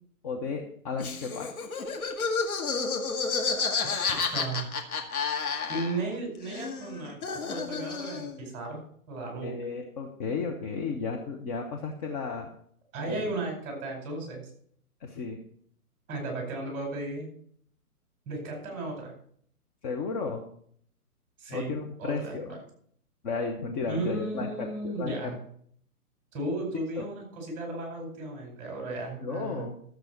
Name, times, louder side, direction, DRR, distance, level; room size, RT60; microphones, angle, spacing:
voice 1, 0.2-1.5 9.4-12.5 13.0-13.3 15.0-15.4 19.8-20.4 21.5-22.5 23.2-25.3 27.0-27.1 29.2-29.7, left 4 dB, 25° left, 2 dB, 1.0 m, -33 dB
Laughter, 1.0-6.2 6.4-8.4, left 5 dB, 65° left, 2.1 m, -31 dB
voice 2, 4.3-4.8 5.7-8.8 9.1-9.6 12.9-14.5 16.1-17.3 18.2-19.1 21.4-21.7 22.0-22.6 23.9-25.4 26.3-29.7, right 2 dB, 20° right, 0 dB, 4.9 m, -35 dB
13.5 x 7.8 x 4.5 m, 0.62 s
figure-of-eight pair, 135°, 45 cm